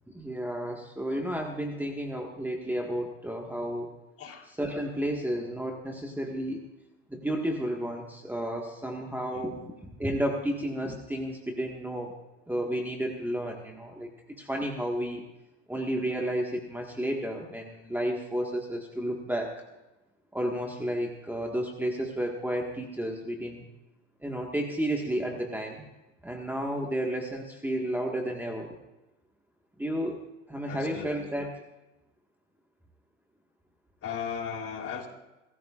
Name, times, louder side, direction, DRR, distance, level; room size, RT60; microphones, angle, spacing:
voice 1, 0.1-3.9 4.5-6.6 7.1-9.7 10.0-12.1 12.5-14.1 14.4-15.2 15.7-19.5 20.3-23.7 24.2-25.9 26.2-28.7 29.8-30.2 30.5-31.6, equal, 5° right, 1 dB, 1.6 m, -32 dB
voice 2, 9.3-9.7 30.7-31.1 34.0-35.1, left 7 dB, 40° left, 2 dB, 3.6 m, -37 dB
27.5 x 14.5 x 2.5 m, 1.0 s
supercardioid pair, 105°, 36 cm